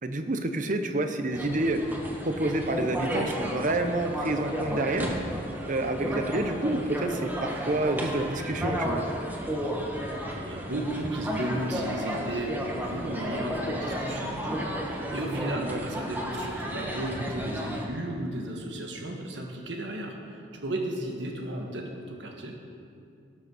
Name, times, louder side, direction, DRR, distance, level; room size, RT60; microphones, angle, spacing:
voice 1, 0.0-1.9 2.2-5.2 5.7-9.0 15.3-15.8, right 2 dB, 45° right, 7 dB, 0.8 m, -28 dB
sound 1, 1.3-17.8, equal, 10° right, 1.3 m, -33 dB
voice 2, 10.2-22.6, right 1 dB, 75° right, 2 dB, 1.5 m, -34 dB
17.5 x 6.6 x 6.2 m, 2.4 s
head